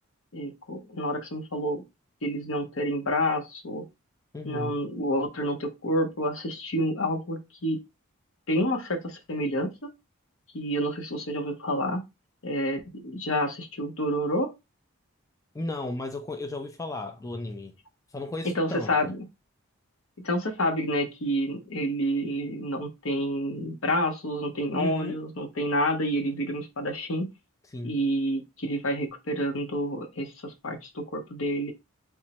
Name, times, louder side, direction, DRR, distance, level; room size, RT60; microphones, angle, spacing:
voice 1, 0.3-1.8 2.2-3.8 4.4-7.8 8.5-9.9 10.5-12.1 12.4-14.5 18.5-19.2 20.2-27.3 27.8-31.7, equal, 70° left, 0.9 m, -29 dB
voice 2, 4.3-4.8 15.5-17.8 18.1-19.1 24.7-25.2 27.7-27.9, left 2 dB, 15° left, 0.4 m, -34 dB
3.5 x 3.1 x 2.9 m
head